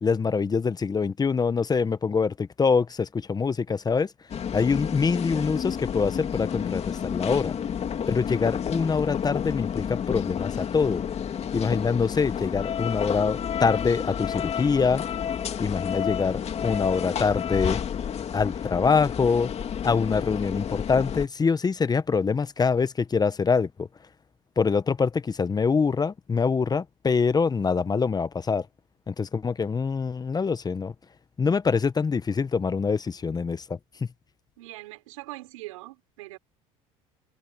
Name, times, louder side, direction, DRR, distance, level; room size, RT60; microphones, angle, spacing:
voice 1, 0.0-4.1 4.5-7.5 8.1-11.0 11.5-15.0 15.6-17.8 18.3-19.5 19.8-23.7 24.6-28.6 29.1-30.9 31.4-33.6, left 5 dB, 25° left, 1.1 m, -24 dB
sound 1, 4.3-21.3, left 8 dB, 40° left, 2.5 m, -30 dB
voice 2, 34.6-36.4, right 19 dB, 85° right, 4.6 m, -42 dB
supercardioid pair, 85°, 16 cm